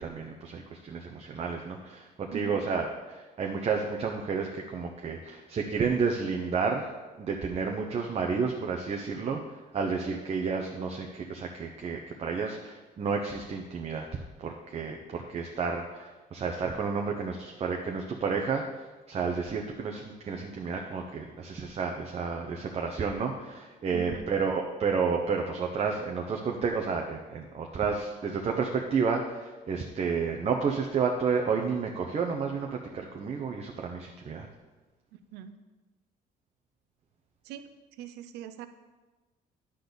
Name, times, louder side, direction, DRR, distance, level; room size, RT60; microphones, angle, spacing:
voice 1, 0.0-6.9 7.2-34.5, right 5 dB, 35° right, 2 dB, 0.9 m, -31 dB
voice 2, 2.3-2.6 23.9-24.2 35.3-35.6 37.4-37.7 38.0-38.7, right 9 dB, 85° right, 10 dB, 0.7 m, -41 dB
10.0 x 4.0 x 6.8 m, 1.2 s
cardioid pair, 110°, 17 cm